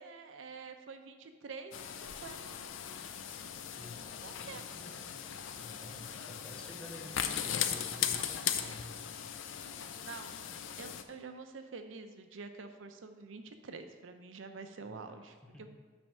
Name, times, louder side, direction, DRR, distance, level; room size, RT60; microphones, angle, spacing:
voice 1, 0.0-2.4 4.0-4.6 10.0-10.4 10.8-15.7, right 4 dB, 80° right, 7 dB, 0.6 m, -47 dB
sound 1, 1.7-11.0, left 9 dB, 75° left, 0.5 m, -38 dB
voice 2, 3.8-5.1 5.5-9.0 14.8-15.2 15.4-15.7, left 1 dB, 5° left, 1 dB, 0.8 m, -50 dB
9.0 x 3.5 x 5.5 m, 1.4 s
head